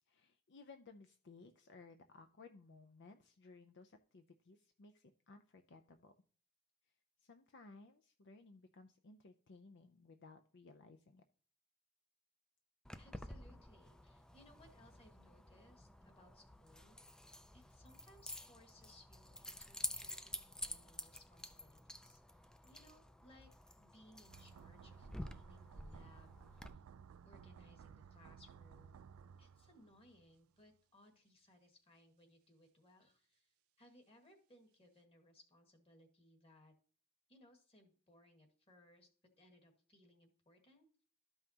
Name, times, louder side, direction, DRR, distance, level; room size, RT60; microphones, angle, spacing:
voice 1, 0.1-6.1 7.2-11.2, left 3 dB, 55° left, 7 dB, 0.6 m, -59 dB
Keys jangling, 12.8-26.7, left 1 dB, 5° left, 0.4 m, -50 dB
voice 2, 13.0-23.5 23.7-26.8 27.2-29.0 29.4-36.7 37.3-39.1 39.4-41.0, left 1 dB, 30° left, 4 dB, 1.8 m, -66 dB
sound 1, 24.3-30.4 30.6-30.7, right 7 dB, 75° right, 0.3 m, -58 dB
13.0 x 5.6 x 2.9 m, 0.44 s
head